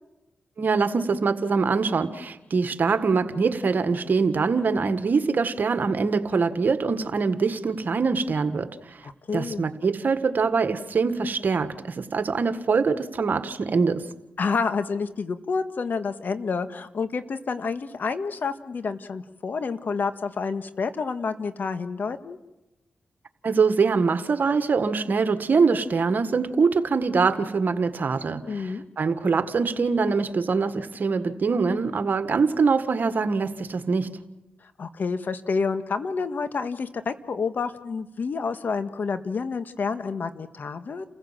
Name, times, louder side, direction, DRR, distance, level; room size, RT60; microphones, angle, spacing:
voice 1, 0.6-14.0 23.4-34.1, right 4 dB, 60° right, 10 dB, 1.7 m, -24 dB
voice 2, 9.0-9.7 14.4-22.4 28.4-28.8 34.6-41.0, left 5 dB, 65° left, 10 dB, 1.6 m, -29 dB
29.5 x 15.5 x 7.6 m, 0.99 s
supercardioid pair, 45°, 4 cm